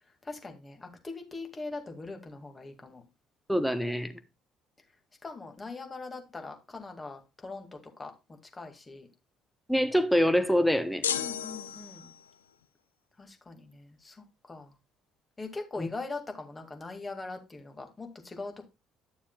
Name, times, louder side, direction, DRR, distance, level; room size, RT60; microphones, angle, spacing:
voice 1, 0.2-3.0 5.2-8.1 8.5-9.1 11.1-12.1 13.2-14.7 15.4-18.7, left 3 dB, 25° left, 2.2 m, -41 dB
voice 2, 3.5-4.1 9.7-11.0 15.8-15.9, equal, ahead, 1.2 m, -25 dB
sound 1, 11.0-12.4, left 9 dB, 85° left, 0.4 m, -33 dB
11.5 x 7.1 x 2.3 m
figure-of-eight pair, 50°, 0 cm